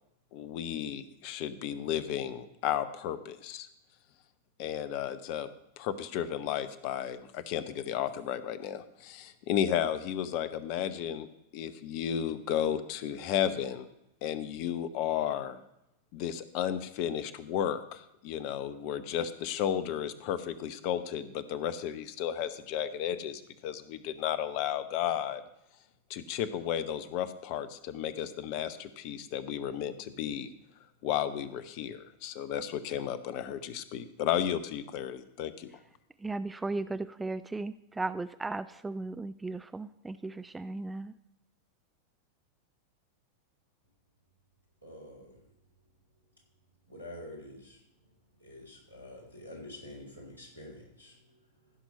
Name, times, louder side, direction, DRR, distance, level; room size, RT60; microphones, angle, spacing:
voice 1, 0.3-3.7 4.6-5.5 5.8-11.3 11.5-13.9 14.2-15.6 16.1-25.4 26.1-30.5 31.0-35.7, left 10 dB, 45° left, 13 dB, 0.8 m, -33 dB
voice 2, 36.2-41.1, right 3 dB, 10° right, 13 dB, 0.4 m, -36 dB
voice 3, 44.8-45.4 46.9-47.8 48.4-51.7, left 1 dB, 90° right, -1 dB, 3.7 m, -47 dB
15.0 x 6.2 x 5.5 m, 0.85 s
figure-of-eight pair, 90°, 0 cm